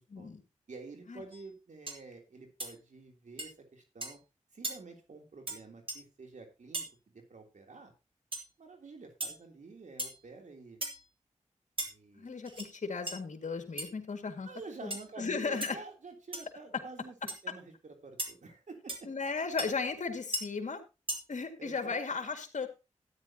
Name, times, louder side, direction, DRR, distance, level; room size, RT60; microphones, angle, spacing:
voice 1, 0.1-0.4 1.1-1.2 12.2-14.5 14.8-14.9 15.2-15.8 19.0-20.8 21.3-22.7, left 4 dB, 70° left, 6 dB, 2.1 m, -35 dB
voice 2, 0.7-4.2 4.5-7.9 8.6-10.8 11.9-12.3 14.4-19.1 21.6-22.0, right 3 dB, 75° right, 3 dB, 3.3 m, -49 dB
sound 1, 1.3-1.5 1.9-2.0 2.6-2.7 3.4-3.5 4.0-4.2 4.6-4.8 5.5-5.6 5.9-6.0 6.7-6.9 8.3-8.5 9.2-9.4 10.0-10.2 10.8-11.1 11.8-11.9 12.5-12.7 13.1-13.2 13.8-13.9 14.9-15.1 15.6-15.7 16.3-16.5 17.3-17.4 18.2-18.3 18.9-19.0 19.6-19.7 20.3-20.4 21.1-21.2, right 1 dB, 45° right, 3.0 m, -37 dB
13.0 x 9.9 x 2.9 m, 0.27 s
cardioid pair, 50°, 13 cm